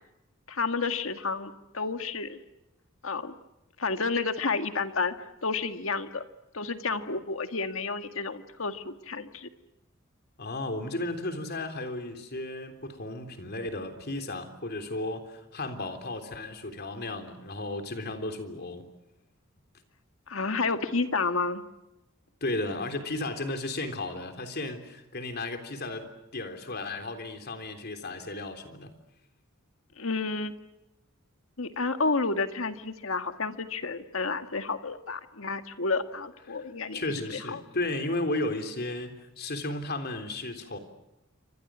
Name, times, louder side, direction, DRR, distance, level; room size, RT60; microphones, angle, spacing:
voice 1, 0.5-2.4 3.0-3.3 3.8-5.1 5.4-6.2 6.5-9.5 20.3-21.6 30.0-30.5 31.6-37.0 37.3-37.6, left 4 dB, 70° left, 8 dB, 1.8 m, -30 dB
voice 2, 10.4-18.8 22.4-28.9 36.5-36.6 36.9-40.8, left 2 dB, 50° left, 7 dB, 3.5 m, -34 dB
28.5 x 25.5 x 6.3 m, 0.93 s
head